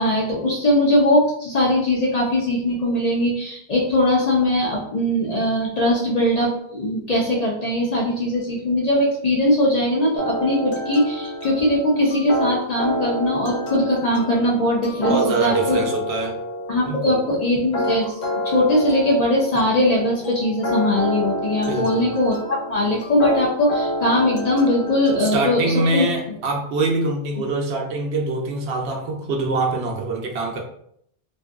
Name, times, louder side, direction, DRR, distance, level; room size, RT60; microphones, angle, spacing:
voice 1, 0.0-15.8 16.7-18.1 18.4-26.1, left 1 dB, 45° left, -3 dB, 0.6 m, -20 dB
sound 1, 10.2-25.5, equal, 80° left, 1.0 m, -28 dB
voice 2, 15.0-16.3 16.8-17.2 21.7-22.1 25.2-30.6, right 3 dB, 80° right, 0 dB, 0.9 m, -24 dB
2.5 x 2.5 x 2.3 m, 0.69 s
omnidirectional pair, 1.1 m